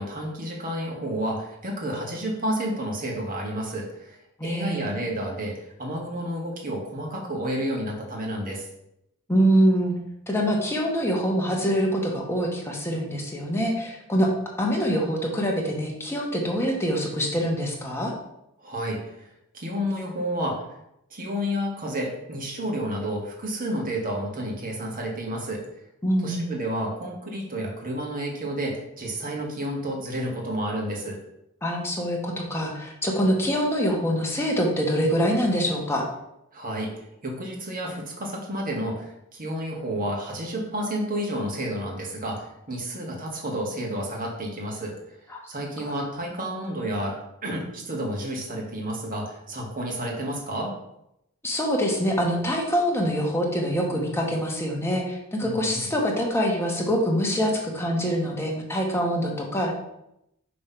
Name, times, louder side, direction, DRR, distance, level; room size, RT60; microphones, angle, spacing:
voice 1, 0.0-8.6 18.6-20.6 21.1-25.6 26.2-31.2 36.5-36.9 37.2-44.9 45.5-47.2 47.4-50.7 55.4-55.9, equal, 40° right, -1 dB, 1.5 m, -30 dB
voice 2, 4.4-4.9 9.3-9.9 10.3-14.3 14.6-18.1 26.0-26.4 31.6-36.0 45.3-45.4 45.8-45.9 51.4-59.7, equal, 10° left, -1 dB, 1.1 m, -25 dB
5.6 x 3.4 x 5.6 m, 0.82 s
head